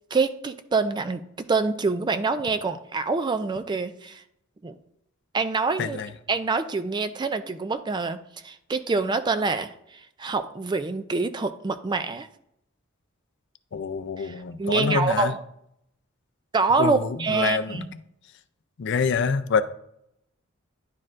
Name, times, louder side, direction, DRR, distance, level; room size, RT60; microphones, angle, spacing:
voice 1, 0.1-1.2 1.5-4.2 4.6-4.7 5.3-6.0 6.3-8.2 8.4-12.3 14.2-15.4 16.5-17.9, right 4 dB, 20° right, 10 dB, 0.3 m, -26 dB
voice 2, 5.8-6.1 13.7-15.3 16.8-17.8 18.8-19.6, left 5 dB, 55° left, 12 dB, 0.4 m, -26 dB
10.5 x 4.3 x 2.5 m, 0.76 s
head